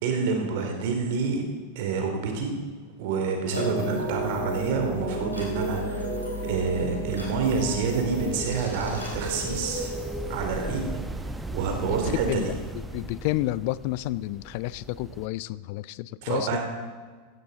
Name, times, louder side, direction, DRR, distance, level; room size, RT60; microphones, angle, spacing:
voice 1, 0.0-1.4 1.7-2.5 3.0-6.1 6.4-9.9 10.3-10.8 11.5-12.5 16.2-16.6, right 5 dB, 50° right, 3 dB, 2.6 m, -28 dB
sound 1, 3.5-10.8, right 1 dB, 85° left, 5.3 m, -32 dB
sound 2, 7.1-15.3, right 1 dB, 5° right, 0.8 m, -38 dB
voice 2, 11.8-16.6, left 17 dB, 45° left, 19 dB, 0.4 m, -30 dB
16.0 x 15.0 x 3.9 m, 1.5 s
figure-of-eight pair, 90°, 0 cm